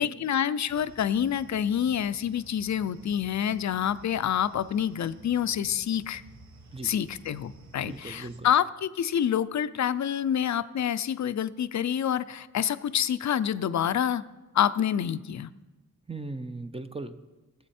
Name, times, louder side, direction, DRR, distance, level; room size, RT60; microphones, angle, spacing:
voice 1, 0.0-6.2 6.8-14.2 14.5-15.5, left 9 dB, 60° left, 15 dB, 0.5 m, -27 dB
sound 1, 0.7-8.4, right 3 dB, 60° right, 1.1 m, -52 dB
voice 2, 7.8-8.5 16.1-17.2, right 2 dB, 20° right, 9 dB, 0.6 m, -38 dB
18.0 x 7.9 x 4.3 m, 1.2 s
wide cardioid pair, 105°, 32 cm